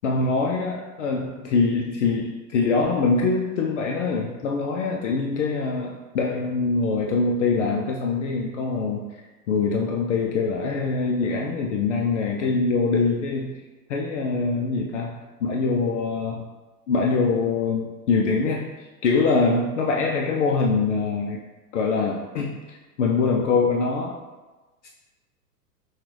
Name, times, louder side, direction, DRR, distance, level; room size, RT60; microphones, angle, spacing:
voice 1, 0.0-9.0 9.5-13.5 13.9-16.5 16.9-21.4 21.7-24.2 24.8-24.9, left 4 dB, 50° left, 0 dB, 0.5 m, -24 dB
5.9 x 2.4 x 3.1 m, 1.2 s
figure-of-eight pair, 100°, 48 cm